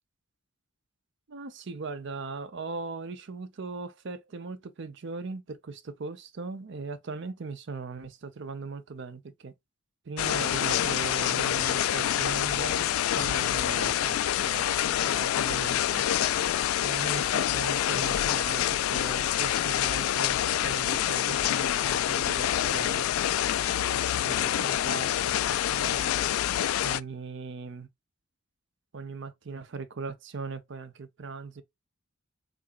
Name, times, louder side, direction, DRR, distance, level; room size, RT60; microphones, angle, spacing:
voice 1, 1.3-9.5 10.1-12.9 13.1-16.0 16.8-23.2 23.9-26.2 26.8-27.9 28.9-31.6, right 4 dB, 60° right, 0.6 m, -39 dB
sound 1, 10.2-27.0, left 11 dB, 85° left, 0.3 m, -27 dB
3.9 x 3.3 x 2.2 m
head